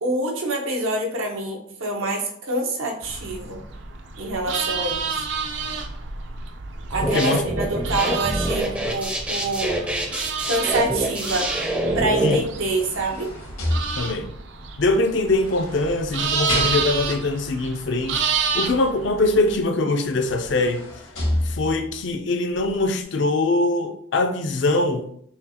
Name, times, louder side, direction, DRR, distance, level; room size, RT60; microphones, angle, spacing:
voice 1, 0.0-3.6 4.2-5.2 6.9-9.7 10.5-11.5 11.9-13.3, right 2 dB, 90° right, 0.9 m, -26 dB
sound 1, 3.0-19.5, right 5 dB, 60° right, 0.4 m, -30 dB
sound 2, 6.9-12.3, right 1 dB, 5° right, 0.4 m, -25 dB
voice 2, 7.0-7.4 12.2-12.4 14.0-14.3 14.8-18.2 18.5-20.9 21.4-25.1, left 2 dB, 60° left, 0.5 m, -22 dB
sound 3, 12.4-14.4 15.3-17.3 19.5-19.6 20.0-22.0 22.5-22.7, left 1 dB, 85° left, 1.5 m, -30 dB
5.7 x 2.3 x 2.8 m
head